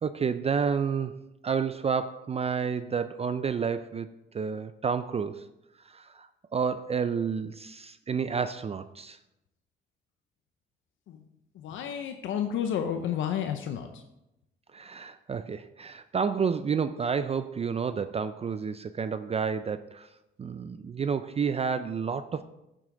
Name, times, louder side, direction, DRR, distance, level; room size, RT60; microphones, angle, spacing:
voice 1, 0.0-1.1 1.4-4.1 4.3-5.4 5.9-9.2 14.7-20.1 20.4-22.4, right 6 dB, 30° right, 12 dB, 0.4 m, -30 dB
voice 2, 11.6-13.9, left 9 dB, 80° left, 6 dB, 0.7 m, -30 dB
9.8 x 7.6 x 3.8 m, 0.89 s
cardioid pair, 90°, 20 cm